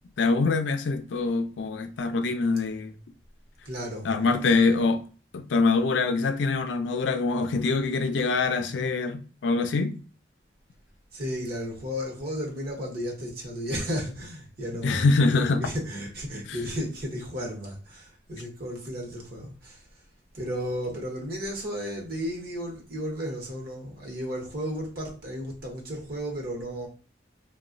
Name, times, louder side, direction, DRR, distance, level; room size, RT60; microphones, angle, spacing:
voice 1, 0.2-2.9 4.0-5.0 5.3-9.9 14.8-15.6, left 3 dB, 85° left, 0.4 m, -24 dB
voice 2, 3.6-4.1 4.4-4.6 11.1-19.8 20.3-26.9, equal, 55° right, 1.0 m, -34 dB
2.9 x 2.2 x 2.5 m
head